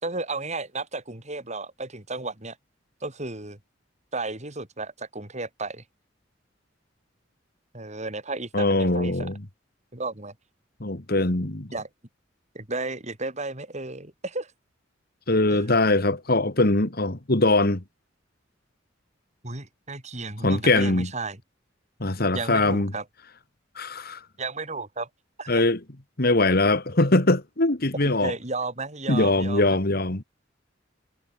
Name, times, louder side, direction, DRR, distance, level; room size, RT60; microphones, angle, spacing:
voice 1, 0.0-2.6 3.0-3.6 4.1-5.8 7.7-9.3 9.9-10.3 11.7-11.9 12.5-14.5 15.5-15.6 19.4-21.4 22.3-23.0 24.4-25.1 25.4-25.6 28.0-29.8, right 3 dB, 35° right, 4.6 m, -33 dB
voice 2, 8.5-9.4 10.8-11.7 15.3-17.8 20.4-21.1 22.0-22.9 23.8-24.2 25.5-25.8 26.2-28.3 29.1-30.2, left 2 dB, 50° left, 2.1 m, -22 dB
head